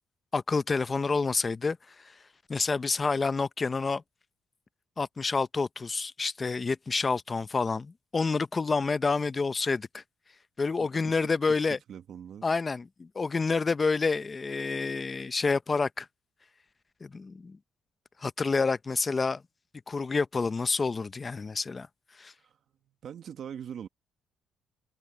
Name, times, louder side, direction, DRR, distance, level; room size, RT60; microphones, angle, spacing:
voice 1, 0.3-1.8 2.0-2.1 2.5-4.0 5.0-10.0 10.6-11.8 12.4-16.1 17.0-17.6 18.2-19.4 19.9-21.9 22.2-22.3, left 4 dB, 25° left, 0.6 m, -28 dB
voice 2, 10.8-11.2 11.5-11.6 11.9-12.5 22.4-22.6 23.0-23.9, right 8 dB, 55° right, 1.1 m, -42 dB
cardioid pair, 120°, 0 cm